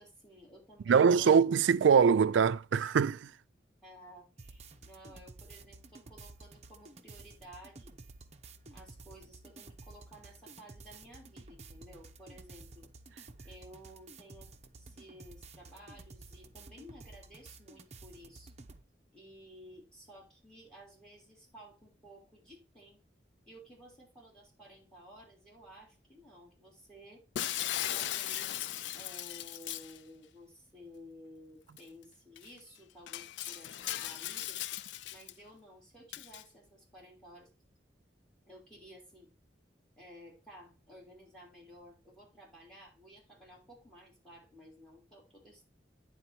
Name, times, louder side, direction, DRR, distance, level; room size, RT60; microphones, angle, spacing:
voice 1, 0.0-1.4 3.8-8.0 8.7-12.9 13.4-14.5 14.8-18.5 19.1-23.0 23.5-27.2 27.9-34.6 35.1-37.5 38.5-39.3 40.0-45.6, equal, 5° left, 3.2 m, -54 dB
voice 2, 0.9-3.3, right 6 dB, 90° right, 0.4 m, -23 dB
sound 1, 4.4-18.8, right 3 dB, 35° right, 0.7 m, -52 dB
Shatter, 27.4-30.0 31.8-31.9 32.4-32.5 33.1-35.3 36.1-36.4, left 12 dB, 75° left, 0.3 m, -37 dB
9.5 x 3.9 x 4.3 m
head